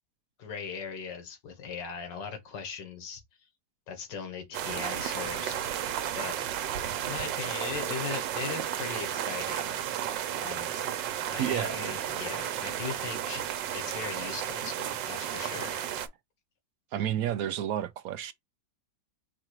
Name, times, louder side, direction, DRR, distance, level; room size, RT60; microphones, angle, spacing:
voice 1, 0.4-3.5 3.9-5.6 6.2-6.5 7.0-9.8 10.4-10.9 11.1-13.4 13.7-15.9, left 6 dB, 85° left, 2.0 m, -39 dB
sound 1, 4.5-16.1, right 10 dB, 90° right, 1.4 m, -33 dB
voice 2, 11.4-11.8 16.9-18.3, right 10 dB, 70° right, 0.9 m, -30 dB
4.8 x 2.4 x 4.5 m
omnidirectional pair, 1.9 m